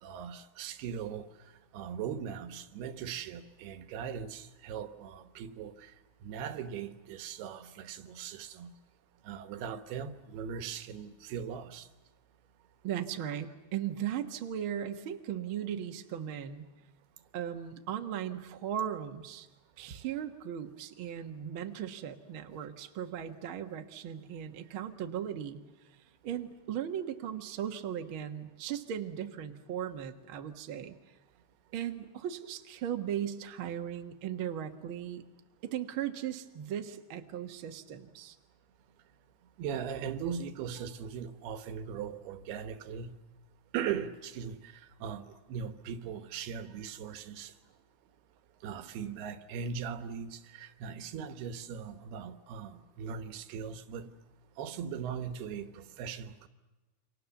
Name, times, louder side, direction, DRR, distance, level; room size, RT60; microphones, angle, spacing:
voice 1, 0.0-1.3 1.7-5.9 6.2-8.7 9.3-11.9 39.6-43.1 43.7-47.5 48.6-54.1 54.6-56.5, right 7 dB, 85° right, 3.2 m, -39 dB
voice 2, 12.8-16.7 17.3-19.5 19.8-25.6 26.2-31.0 31.7-35.2 35.6-38.4, right 9 dB, 60° right, 1.3 m, -37 dB
28.5 x 25.0 x 7.1 m
omnidirectional pair, 4.5 m